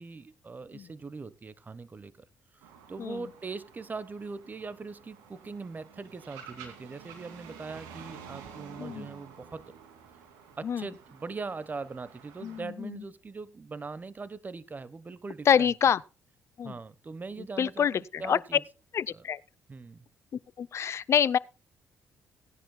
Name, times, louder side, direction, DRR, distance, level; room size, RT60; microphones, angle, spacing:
voice 1, 0.0-2.1 2.9-9.7 10.6-15.7 16.6-18.6 19.1-19.2 19.7-20.0, right 4 dB, 30° right, 1.1 m, -41 dB
sound 1, 2.6-12.6, right 7 dB, 85° right, 2.6 m, -50 dB
voice 2, 12.4-13.0 15.5-16.0 16.6-16.7 17.6-18.4 18.9-19.4 20.6-21.4, left 8 dB, 50° left, 0.6 m, -26 dB
17.5 x 10.5 x 2.3 m
supercardioid pair, 60°, 6 cm